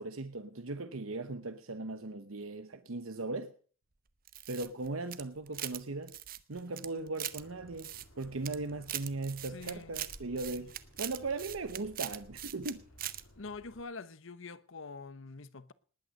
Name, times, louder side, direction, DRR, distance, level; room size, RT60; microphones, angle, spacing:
voice 1, 0.0-3.5 4.5-6.2 6.5-7.9 8.2-12.8, right 3 dB, 85° right, 1.0 m, -38 dB
sound 1, 4.3-5.8 6.1-7.4 7.8-8.6 8.8-12.7 13.0-13.2, right 13 dB, 45° right, 0.8 m, -41 dB
Bird, 7.3-13.8, left 1 dB, 90° left, 3.5 m, -57 dB
voice 2, 9.5-10.0 13.4-15.7, left 3 dB, 70° left, 1.0 m, -45 dB
19.5 x 9.3 x 6.6 m
head